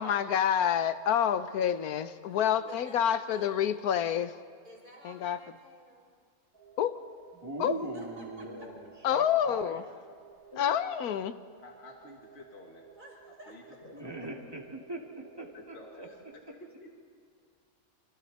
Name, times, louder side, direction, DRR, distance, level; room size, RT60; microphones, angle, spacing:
voice 1, 0.0-4.4 5.0-5.4 6.8-7.0 7.6-7.8 9.0-9.8 10.6-11.4, left 9 dB, 90° left, 12 dB, 1.3 m, -28 dB
voice 2, 2.2-3.5 4.6-6.1 7.5-7.6 7.9-8.5 12.9-13.6, right 1 dB, 35° right, -4 dB, 6.3 m, -53 dB
sound 1, 6.5-16.4, right 8 dB, 80° right, 3.3 m, -56 dB
voice 3, 7.4-8.6 9.1-9.8 13.9-16.1, right 2 dB, 15° right, -1 dB, 2.6 m, -40 dB
voice 4, 8.4-8.7 10.1-10.2 10.5-10.7 11.6-12.9 13.3-14.2 15.5-16.9, left 2 dB, 45° left, 1 dB, 2.1 m, -50 dB
29.0 x 25.0 x 4.2 m, 2.1 s
omnidirectional pair, 1.5 m